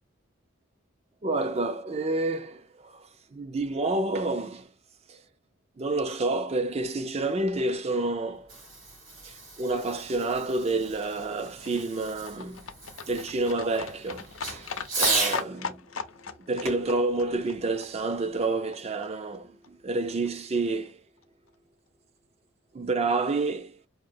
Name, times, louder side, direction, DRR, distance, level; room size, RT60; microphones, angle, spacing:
voice 1, 1.2-3.0 3.3-4.7 5.1-5.2 5.8-8.5 9.2-12.6 13.1-15.8 16.4-21.0 22.7-23.8, right 2 dB, 30° right, 0.4 m, -29 dB
Fireworks, 8.2-15.5 16.6-18.3, right 3 dB, 75° right, 2.7 m, -35 dB
Livestock farm animals working animals, 10.5-18.8 19.0-19.1 19.3-19.4 19.6-19.7 20.0-20.1 20.3-20.4 20.6-20.7 20.9-21.0 21.2-21.3, left 5 dB, 65° left, 0.5 m, -39 dB
4.8 x 2.7 x 2.6 m
head